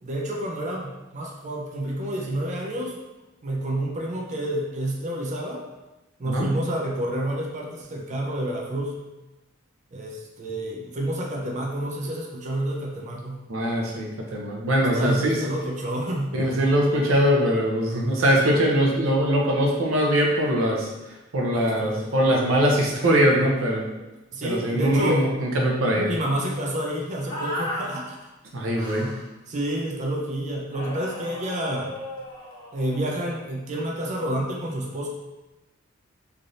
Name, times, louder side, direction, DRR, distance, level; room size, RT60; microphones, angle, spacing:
voice 1, 0.0-3.0 3.4-5.6 6.2-9.0 9.9-13.4 14.9-16.4 21.5-22.0 24.3-25.3 25.8-28.2 29.5-31.9 32.7-35.1, right 1 dB, 35° right, -2 dB, 0.4 m, -29 dB
voice 2, 13.5-15.4 16.3-20.9 21.3-23.9 24.4-26.1 28.5-29.1, equal, 75° right, -1 dB, 0.6 m, -22 dB
sound 1, 27.3-27.9 28.7-29.2 30.7-33.0, left 1 dB, 80° left, 1.4 m, -35 dB
3.2 x 2.5 x 2.6 m, 1.1 s
head